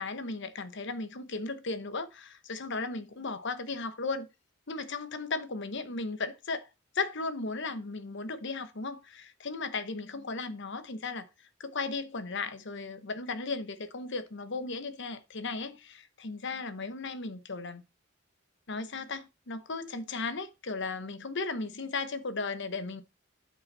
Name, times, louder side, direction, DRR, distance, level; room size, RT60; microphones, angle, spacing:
voice 1, 0.0-4.3 4.7-6.7 6.9-11.3 11.6-17.8 18.7-23.0, left 3 dB, 60° left, 1.0 m, -36 dB
8.8 x 5.4 x 4.1 m
head